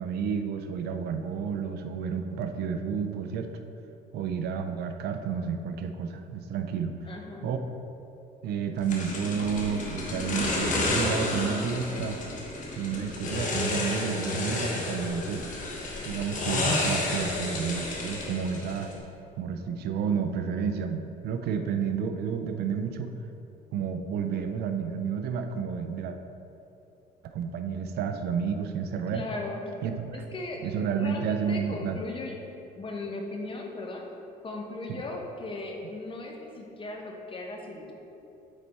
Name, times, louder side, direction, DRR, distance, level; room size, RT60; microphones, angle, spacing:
voice 1, 0.0-3.5 4.1-7.0 7.4-7.6 8.4-12.2 12.7-15.5 16.0-18.9 19.4-23.1 23.7-26.2 27.2-29.2 29.8-30.2 30.6-32.0 34.9-35.0, right 6 dB, 70° right, 7 dB, 0.5 m, -31 dB
voice 2, 7.0-7.5 29.1-29.6 30.3-30.7 31.0-32.4 32.8-34.1 34.4-37.9, left 2 dB, 30° left, 1 dB, 1.0 m, -37 dB
sound 1, 8.9-19.0, left 2 dB, 50° left, 1.3 m, -31 dB
8.0 x 4.1 x 4.4 m, 2.8 s
cardioid pair, 110°, 17 cm